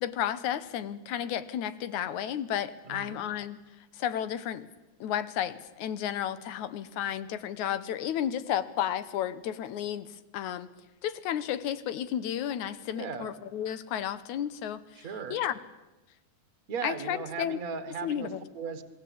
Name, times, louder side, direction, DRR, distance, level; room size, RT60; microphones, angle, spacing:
voice 1, 0.0-3.6 3.9-4.7 5.0-10.7 11.0-15.5 16.8-17.6 18.0-18.4, left 10 dB, 75° left, 14 dB, 2.4 m, -32 dB
voice 2, 2.9-3.2 12.9-13.3 15.0-15.4 16.7-18.8, right 5 dB, 35° right, 10 dB, 1.6 m, -37 dB
27.5 x 20.0 x 8.6 m, 1.0 s
omnidirectional pair, 3.5 m